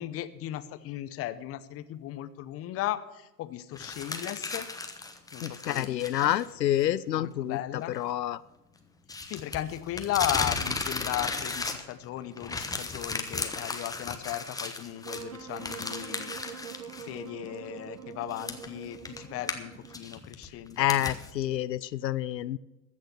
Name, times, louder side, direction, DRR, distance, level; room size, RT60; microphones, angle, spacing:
voice 1, 0.0-4.7 5.3-6.4 7.1-8.0 9.3-16.4 17.0-21.1, left 13 dB, 30° left, 14 dB, 0.8 m, -36 dB
sound 1, 3.7-6.5 6.8-6.9 9.1-12.1 12.4-17.1 17.5-17.6 18.3-21.3, left 3 dB, 5° left, 1.1 m, -35 dB
voice 2, 5.4-7.6 7.9-8.4 20.8-22.6, left 12 dB, 90° left, 18 dB, 0.6 m, -28 dB
Wind instrument woodwind instrument, 15.0-20.1, right 7 dB, 80° right, 1.3 m, -44 dB
14.5 x 6.5 x 7.9 m, 1.0 s
hypercardioid pair, 100°, 49 cm